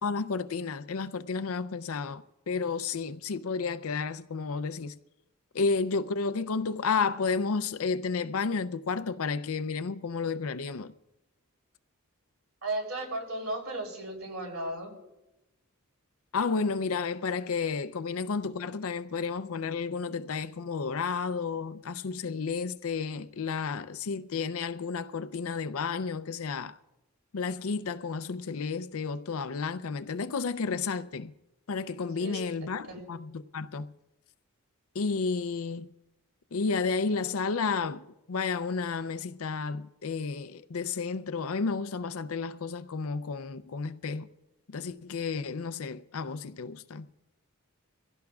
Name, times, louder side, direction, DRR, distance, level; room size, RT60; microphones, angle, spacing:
voice 1, 0.0-4.9 5.5-10.9 16.3-26.8 27.3-31.3 31.7-33.9 34.9-35.9 36.5-44.3 44.7-47.1, left 4 dB, 70° left, 0.5 m, -32 dB
voice 2, 12.6-14.9 32.2-32.4 32.9-33.0, right 1 dB, 60° right, 3.4 m, -35 dB
24.0 x 16.5 x 2.4 m
head